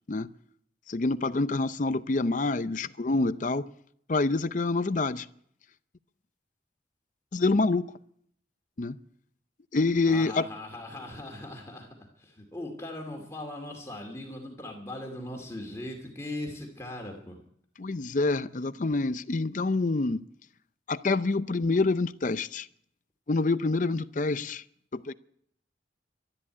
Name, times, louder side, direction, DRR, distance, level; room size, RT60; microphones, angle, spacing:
voice 1, 0.9-3.7 4.1-5.3 7.3-7.9 8.8-9.0 9.7-10.5 17.8-20.2 20.9-22.7 23.3-24.6 24.9-25.1, left 3 dB, 45° left, 0.6 m, -27 dB
voice 2, 10.1-17.4, left 1 dB, 15° left, 2.4 m, -39 dB
13.0 x 11.0 x 9.6 m
head